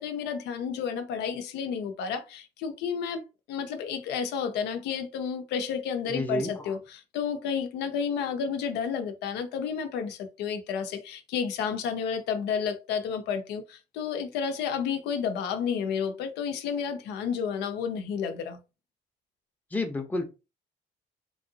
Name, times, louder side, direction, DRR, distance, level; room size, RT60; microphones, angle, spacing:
voice 1, 0.0-18.6, left 7 dB, 80° left, 0.6 m, -31 dB
voice 2, 6.1-6.7 19.7-20.2, left 1 dB, 10° left, 0.6 m, -30 dB
3.0 x 2.7 x 2.6 m
cardioid pair, 110°, 17 cm